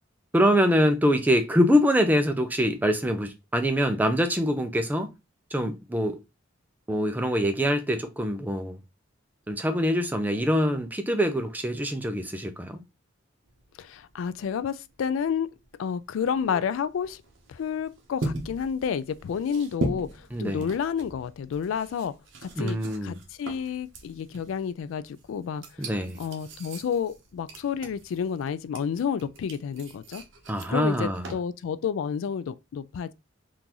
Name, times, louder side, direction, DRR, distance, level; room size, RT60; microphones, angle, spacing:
voice 1, 0.3-5.1 5.5-6.2 6.9-8.8 9.5-12.8 20.3-20.7 22.6-23.1 25.8-26.2 30.5-31.4, equal, 10° right, 0.4 m, -24 dB
sound 1, 13.5-31.3, right 2 dB, 60° right, 0.8 m, -40 dB
voice 2, 13.8-15.5 15.8-17.2 17.5-22.1 22.4-25.9 26.2-30.2 30.7-33.1, left 7 dB, 75° left, 0.3 m, -30 dB
3.7 x 2.5 x 2.9 m
head